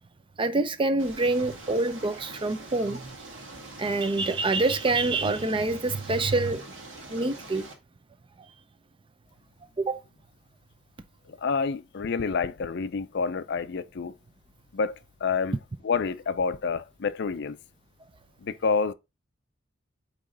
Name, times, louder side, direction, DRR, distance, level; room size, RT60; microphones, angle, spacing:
voice 1, 0.4-3.2 3.8-6.7 7.1-7.7 9.8-10.0, right 2 dB, 25° right, 0.5 m, -26 dB
sound 1, 1.0-7.7, right 2 dB, 70° right, 1.9 m, -44 dB
voice 2, 11.4-14.1 14.7-15.5 15.8-17.6 18.4-18.9, left 5 dB, 60° left, 0.5 m, -28 dB
8.5 x 3.1 x 3.8 m
head